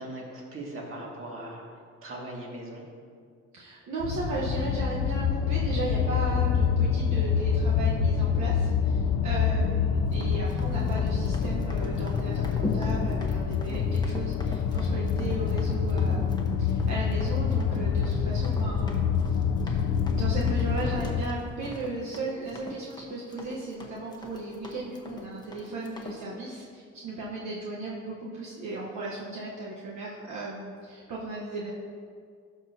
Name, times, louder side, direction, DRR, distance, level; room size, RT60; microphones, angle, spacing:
voice 1, 0.0-1.6 2.0-2.8, right 1 dB, 45° right, -3 dB, 2.1 m, -39 dB
voice 2, 3.5-19.4 19.6-31.7, right 2 dB, 70° right, -5 dB, 1.2 m, -36 dB
sound 1, 4.0-21.2, left 6 dB, 70° left, 0.6 m, -26 dB
Run, 10.1-26.2, left 2 dB, 15° left, 1.1 m, -41 dB
12.0 x 6.2 x 2.8 m, 2.1 s
cardioid pair, 90°, 30 cm